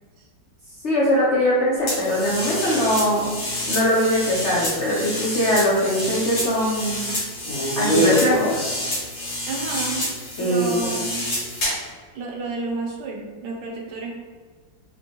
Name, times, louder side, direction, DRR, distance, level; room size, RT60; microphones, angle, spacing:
voice 1, 0.8-3.4 3.7-7.1 7.8-8.5 10.4-10.9, equal, 85° left, -6 dB, 0.6 m, -21 dB
sound 1, 1.9-11.9, equal, 60° left, 1.7 m, -26 dB
voice 2, 9.5-10.1 10.4-11.3 12.1-14.2, right 3 dB, 75° right, 0 dB, 1.1 m, -31 dB
4.3 x 2.2 x 2.8 m, 1.5 s
omnidirectional pair, 2.1 m